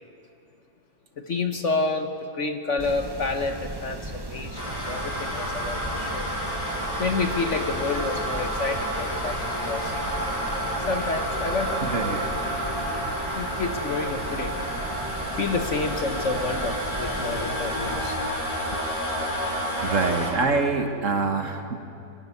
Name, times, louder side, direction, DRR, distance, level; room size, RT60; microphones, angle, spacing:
voice 1, 1.2-6.3 6.7-9.9 10.9-11.8 13.4-14.5 15.4-18.2 18.5-18.6, left 3 dB, 50° left, 6 dB, 1.2 m, -29 dB
sound 1, 2.8-18.2, right 2 dB, 15° right, 0.9 m, -37 dB
sound 2, 4.6-20.3, equal, 20° left, 4.6 m, -30 dB
voice 2, 11.8-12.2 19.8-21.9, right 4 dB, 50° right, 5 dB, 1.6 m, -25 dB
25.5 x 12.0 x 9.7 m, 2.9 s
omnidirectional pair, 1.9 m